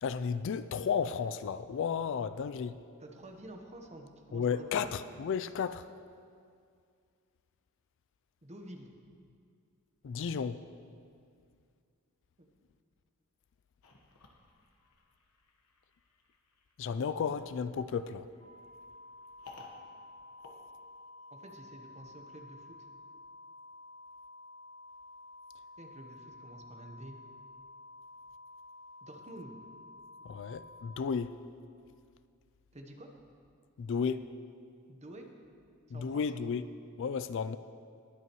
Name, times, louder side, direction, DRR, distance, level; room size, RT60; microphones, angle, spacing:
voice 1, 0.0-2.8 4.3-5.8 10.0-10.6 16.8-18.3 30.2-31.3 33.8-34.3 35.9-36.6 37.0-37.6, left 6 dB, 60° left, 13 dB, 0.3 m, -33 dB
voice 2, 3.0-4.9 8.4-8.9 12.4-12.5 21.3-22.8 25.8-27.1 29.0-29.5 32.7-33.1 34.9-35.3 35.9-36.2, right 1 dB, 30° right, 3 dB, 1.0 m, -49 dB
sound 1, 13.8-21.5, left 3 dB, 85° left, 1.2 m, -58 dB
sound 2, 18.4-31.0, left 2 dB, 35° left, 3.3 m, -52 dB
20.5 x 8.4 x 3.1 m, 2.3 s
head